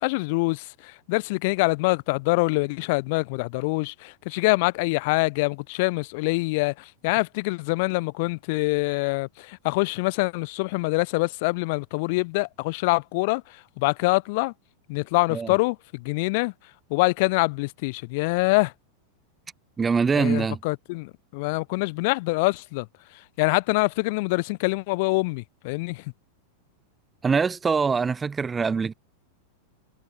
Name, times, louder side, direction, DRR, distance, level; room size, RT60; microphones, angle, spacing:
voice 1, 0.0-13.4 13.8-14.5 14.9-16.5 16.9-18.7 20.1-22.9 23.4-26.0, left 26 dB, 50° left, 0.8 m, -25 dB
voice 2, 19.8-20.6 27.2-28.9, right 5 dB, 15° right, 0.3 m, -23 dB
figure-of-eight pair, 90°, 0 cm